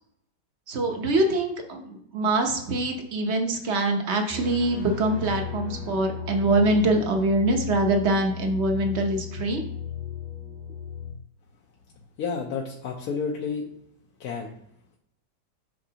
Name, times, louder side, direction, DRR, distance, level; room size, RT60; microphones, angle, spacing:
voice 1, 0.7-9.6, right 2 dB, 45° right, 4 dB, 1.0 m, -24 dB
sound 1, 4.3-11.1, left 8 dB, 20° right, 0.8 m, -35 dB
voice 2, 12.2-13.6 14.2-14.5, left 5 dB, 65° left, -2 dB, 1.2 m, -30 dB
8.4 x 5.8 x 2.9 m, 0.73 s
omnidirectional pair, 2.0 m